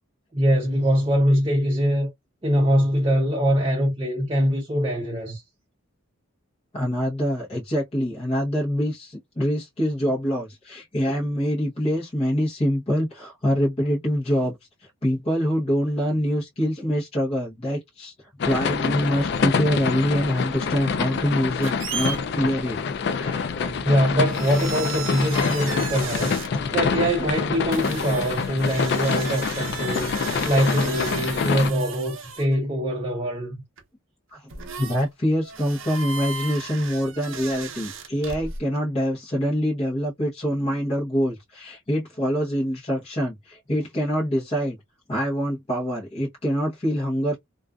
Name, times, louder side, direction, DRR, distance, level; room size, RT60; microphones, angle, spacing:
voice 1, 0.3-2.1 2.4-5.4 23.8-26.4 26.7-30.1 30.4-33.6, equal, 25° right, 0.6 m, -23 dB
voice 2, 6.7-18.1 18.4-22.8 23.0-23.7 34.3-34.5 34.8-44.8 45.1-47.4, equal, 30° left, 0.8 m, -25 dB
sound 1, 18.4-31.7, left 5 dB, 55° left, 0.3 m, -26 dB
sound 2, 21.6-22.2 23.6-23.9 24.2-26.5 27.7-32.6 33.8-33.9 34.5-35.1 35.4-38.6, right 6 dB, 70° right, 0.6 m, -35 dB
2.4 x 2.3 x 2.2 m
head